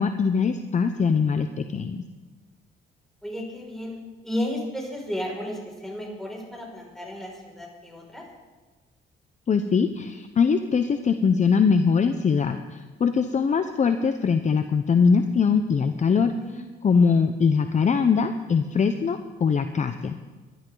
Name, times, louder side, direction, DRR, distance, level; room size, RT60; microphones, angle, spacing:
voice 1, 0.0-2.0 9.5-16.3 16.8-20.2, left 5 dB, 35° left, 8 dB, 0.7 m, -22 dB
voice 2, 3.2-8.2 16.3-16.7, left 1 dB, ahead, -2 dB, 5.7 m, -33 dB
22.0 x 12.0 x 3.9 m, 1.3 s
cardioid pair, 90°, 20 cm